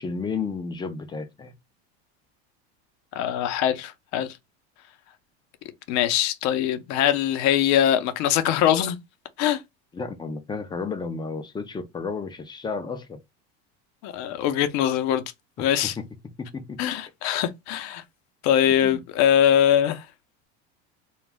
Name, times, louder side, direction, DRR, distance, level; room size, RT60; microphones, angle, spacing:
voice 1, 0.0-1.5 9.9-13.2 15.8-16.0 16.4-16.8 18.8-19.0, left 4 dB, 15° left, 0.4 m, -32 dB
voice 2, 3.1-4.4 5.9-9.0 9.4-9.6 14.0-15.2 15.6-15.9 16.8-18.0 18.4-20.0, left 10 dB, 55° left, 0.6 m, -22 dB
2.3 x 2.0 x 3.2 m
supercardioid pair, 120°, 33 cm